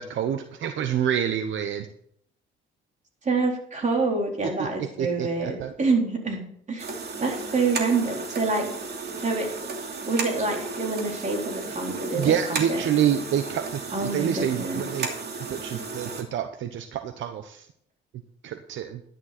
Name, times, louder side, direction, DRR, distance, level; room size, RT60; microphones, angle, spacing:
voice 1, 0.0-1.9 4.6-4.7 5.0-5.7 12.2-15.1 15.5-17.7 18.4-19.0, right 9 dB, 75° right, 8 dB, 0.9 m, -27 dB
voice 2, 3.2-6.4 6.7-6.9 7.2-8.7 9.2-9.5 10.1-12.4 12.7-12.8 13.9-14.9, right 3 dB, 35° right, 0 dB, 4.1 m, -26 dB
sound 1, 6.8-16.2, right 4 dB, 55° right, 2.6 m, -34 dB
12.5 x 10.5 x 4.3 m, 0.67 s
cardioid pair, 90°, 20 cm